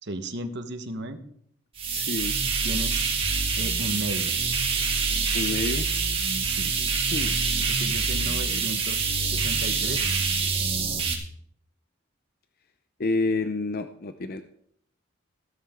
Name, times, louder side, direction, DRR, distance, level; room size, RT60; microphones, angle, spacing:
voice 1, 0.0-1.2 2.6-3.0 3.6-4.3 6.4-6.7 7.7-10.2, right 1 dB, 55° right, 8 dB, 1.4 m, -35 dB
sound 1, 1.8-11.1, right 5 dB, 25° right, 2.4 m, -26 dB
voice 2, 1.9-2.3 5.3-5.9 7.1-7.5 8.4-8.7 13.0-14.4, left 3 dB, 45° left, 9 dB, 0.6 m, -29 dB
15.5 x 13.0 x 3.8 m, 0.68 s
head